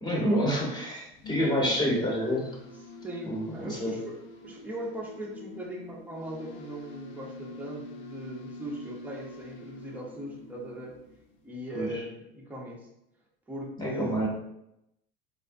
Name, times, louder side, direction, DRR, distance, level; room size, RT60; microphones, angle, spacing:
voice 1, 0.0-2.5 3.3-4.0 11.7-11.9 13.8-14.3, equal, 15° left, -3 dB, 1.0 m, -28 dB
sound 1, 1.0-11.5, left 3 dB, 40° left, 0.5 m, -46 dB
voice 2, 3.0-4.2 4.4-11.0 11.4-12.9 13.5-14.3, right 1 dB, 5° right, -2 dB, 0.6 m, -39 dB
3.5 x 2.1 x 2.5 m, 0.83 s
hypercardioid pair, 90°, 29 cm